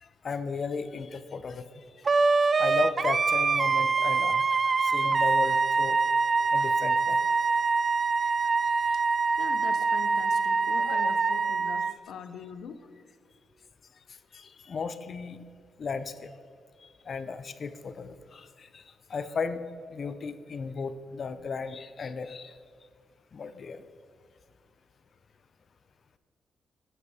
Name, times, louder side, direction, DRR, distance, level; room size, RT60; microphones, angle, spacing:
voice 1, 0.0-1.8 2.4-6.0 6.5-7.2 8.2-8.5 8.8-9.0 11.0-11.1 14.3-15.4 15.8-16.3 16.8-18.8 19.1-19.6 19.9-22.6 23.3-23.8, left 5 dB, 40° left, 12 dB, 0.6 m, -35 dB
Wind instrument woodwind instrument, 2.1-11.9, right 4 dB, 30° right, 0.3 m, -25 dB
voice 2, 9.4-12.8, left 7 dB, 75° left, 10 dB, 0.7 m, -42 dB
11.5 x 10.0 x 4.2 m, 2.1 s
cardioid pair, 145°, 0 cm